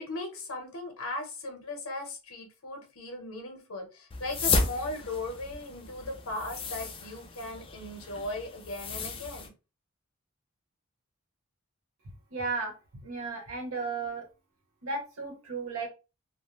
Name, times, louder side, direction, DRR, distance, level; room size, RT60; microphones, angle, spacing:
voice 1, 0.0-9.5, left 2 dB, 80° left, 5 dB, 0.9 m, -38 dB
sound 1, 4.1-9.5, left 3 dB, 25° left, 0.3 m, -33 dB
voice 2, 12.3-12.7 13.0-14.2 14.8-15.9, right 4 dB, 80° right, 2 dB, 0.9 m, -34 dB
2.4 x 2.1 x 2.9 m, 0.30 s
head